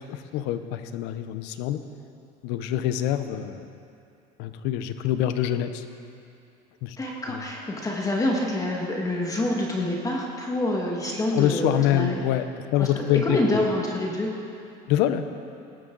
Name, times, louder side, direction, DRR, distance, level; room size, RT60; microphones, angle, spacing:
voice 1, 0.0-1.8 2.4-3.7 4.4-5.8 6.8-7.0 7.3-7.4 11.3-13.7 14.9-15.2, left 11 dB, 80° left, 10 dB, 0.8 m, -25 dB
voice 2, 7.0-12.2 12.8-14.3, left 1 dB, 20° left, -1 dB, 1.9 m, -27 dB
17.5 x 12.5 x 4.0 m, 2.6 s
cardioid pair, 115°, 18 cm